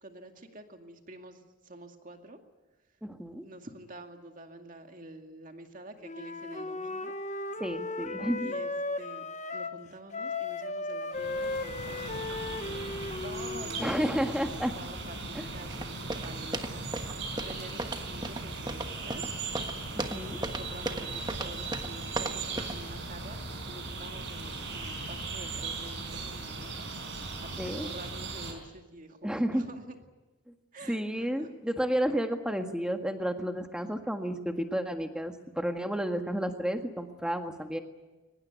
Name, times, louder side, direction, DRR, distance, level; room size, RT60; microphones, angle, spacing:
voice 1, 0.0-2.4 3.4-7.2 8.4-8.7 9.0-9.2 9.5-19.2 20.1-23.4 23.7-30.0 30.7-31.5, right 1 dB, 40° right, 5 dB, 2.3 m, -48 dB
voice 2, 3.0-3.4 7.6-8.5 13.8-14.7 15.3-15.5 19.9-20.4 27.6-27.9 29.2-29.7 30.9-37.8, equal, 5° right, 5 dB, 1.6 m, -31 dB
Wind instrument woodwind instrument, 6.0-9.8 10.1-14.1, left 3 dB, 35° left, 1.1 m, -36 dB
sound 1, 11.1-28.5, right 3 dB, 60° right, 5.2 m, -38 dB
sound 2, 15.7-22.9, right 2 dB, 20° right, 1.3 m, -37 dB
23.5 x 20.0 x 9.3 m, 1.2 s
head